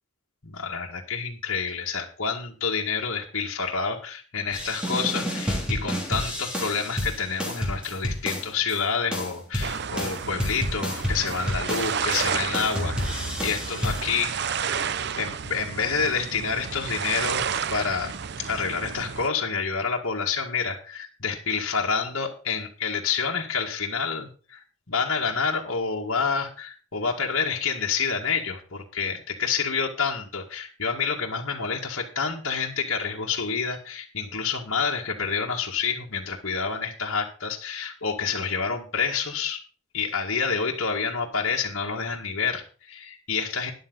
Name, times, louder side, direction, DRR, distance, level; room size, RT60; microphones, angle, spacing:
voice 1, 0.4-14.9 15.2-39.6 39.9-43.7, left 5 dB, 65° left, -2 dB, 2.0 m, -28 dB
sound 1, 4.5-8.8 9.1-12.2 12.5-14.2, equal, 5° right, 3.1 m, -30 dB
sound 2, 9.6-19.3, right 7 dB, 50° right, 0.5 m, -31 dB
13.0 x 11.0 x 4.0 m, 0.37 s
head